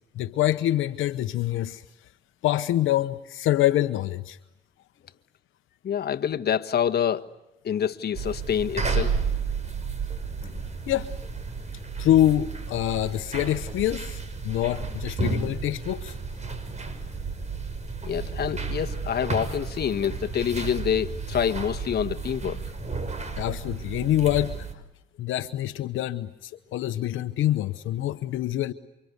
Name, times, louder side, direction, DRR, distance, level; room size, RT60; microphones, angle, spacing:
voice 1, 0.1-1.8 2.4-4.4 10.9-11.1 12.0-16.2 23.4-24.6 25.2-28.7, left 13 dB, 80° left, 1.0 m, -25 dB
voice 2, 5.8-7.3 7.6-9.1 18.0-22.6, left 9 dB, 55° left, 1.5 m, -27 dB
sound 1, 8.1-24.7, right 4 dB, 35° right, 5.5 m, -32 dB
28.5 x 25.5 x 8.2 m
cardioid pair, 90°, 20 cm